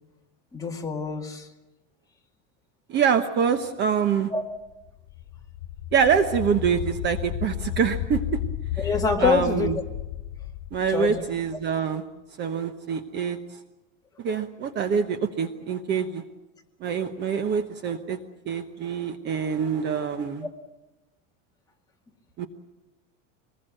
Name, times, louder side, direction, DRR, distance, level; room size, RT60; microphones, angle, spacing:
voice 1, 0.5-1.5 4.3-4.4 8.8-9.7 10.9-11.2, left 5 dB, 10° left, 0 dB, 2.1 m, -25 dB
voice 2, 2.9-4.3 5.9-8.4 8.7-8.9 9.2-9.7 10.7-12.0 12.4-13.4 14.2-16.2 16.8-18.2 18.5-20.5 22.4-22.5, right 7 dB, 30° right, 8 dB, 1.1 m, -25 dB
sound 1, 4.9-11.7, left 12 dB, 75° left, 1.2 m, -33 dB
24.5 x 20.0 x 7.8 m, 1.0 s
cardioid pair, 170°, 34 cm